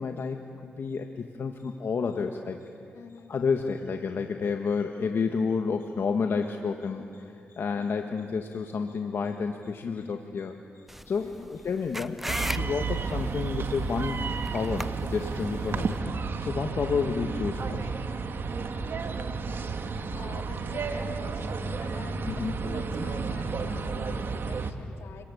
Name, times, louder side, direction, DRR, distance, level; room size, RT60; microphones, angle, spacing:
voice 1, 0.0-2.6 3.3-12.2 12.5-14.2 14.5-16.0 16.4-18.0 18.5-18.6 22.3-22.5, left 5 dB, 60° left, 4 dB, 1.5 m, -30 dB
voice 2, 2.9-3.3 11.2-11.5 16.7-17.0 20.1-25.2, left 5 dB, 80° left, 3 dB, 2.9 m, -46 dB
sound 1, 10.9-16.0, equal, 5° right, 0.8 m, -38 dB
sound 2, 12.3-24.7, right 4 dB, 60° right, 2.0 m, -32 dB
29.5 x 22.5 x 8.5 m, 2.5 s
cardioid pair, 60°, 4 cm